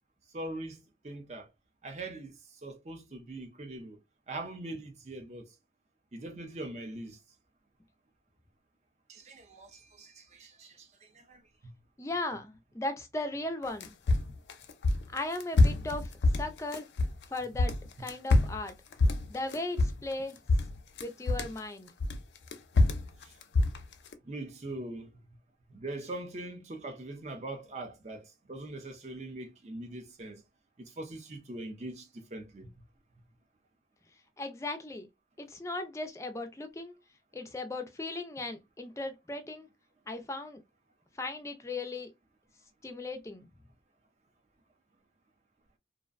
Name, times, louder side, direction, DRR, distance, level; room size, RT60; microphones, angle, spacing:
voice 1, 0.3-0.8 1.0-1.5 1.8-4.0 4.3-5.5 6.1-7.2 9.1-11.7 23.2-23.3 24.2-25.1 25.7-30.4 30.8-32.7, right 2 dB, 40° right, 0.5 m, -42 dB
voice 2, 12.0-13.9 15.1-16.9 17.3-18.7 19.3-20.4 21.0-21.9 34.4-35.1 35.4-37.0 37.3-39.7 40.1-40.6 41.2-42.1 42.8-43.5, left 2 dB, 15° left, 0.3 m, -37 dB
sound 1, 13.6-17.2 17.5-20.2 20.5-21.6 22.0-24.1, left 2 dB, 85° left, 0.4 m, -26 dB
2.5 x 2.1 x 2.4 m
head